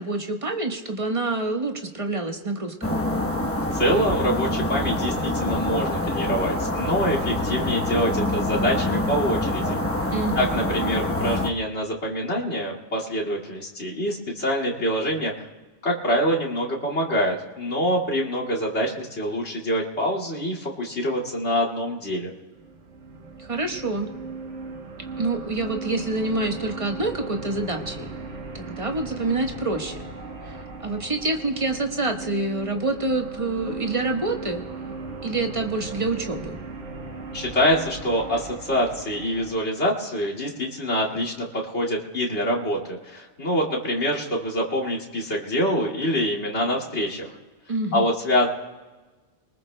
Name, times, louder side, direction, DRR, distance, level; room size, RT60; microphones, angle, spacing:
voice 1, 0.0-3.0 10.1-10.5 23.4-24.1 25.2-28.1 28.5-30.0 30.4-34.6 35.2-36.6 47.7-48.1, right 2 dB, 30° right, 3 dB, 1.3 m, -27 dB
sound 1, 2.8-11.5, left 1 dB, 15° left, 0.9 m, -26 dB
voice 2, 3.7-9.8 10.4-15.5 15.8-22.3 37.3-47.3 47.9-48.5, equal, 65° left, 0 dB, 2.6 m, -25 dB
sound 2, 22.5-39.5, right 3 dB, 75° right, 1.6 m, -37 dB
24.5 x 19.5 x 2.2 m, 1.2 s
omnidirectional pair, 1.2 m